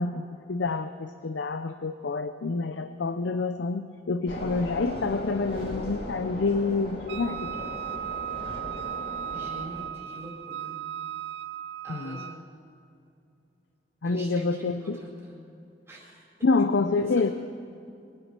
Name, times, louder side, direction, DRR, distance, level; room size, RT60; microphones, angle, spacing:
voice 1, 0.0-7.6 11.9-12.2 14.0-15.0 16.4-17.3, left 3 dB, 85° left, 10 dB, 0.6 m, -27 dB
sound 1, 4.3-9.9, left 1 dB, 60° left, 2.0 m, -38 dB
sound 2, 4.9-6.8 7.8-9.3, right 1 dB, 30° right, 2.3 m, -47 dB
Wind instrument woodwind instrument, 7.1-12.4, right 9 dB, 70° right, 0.5 m, -36 dB
voice 2, 9.3-10.8 11.8-12.4 14.0-15.4 15.9-16.2 17.0-17.3, right 1 dB, 15° right, -4 dB, 4.6 m, -43 dB
23.0 x 9.8 x 6.1 m, 2.6 s
head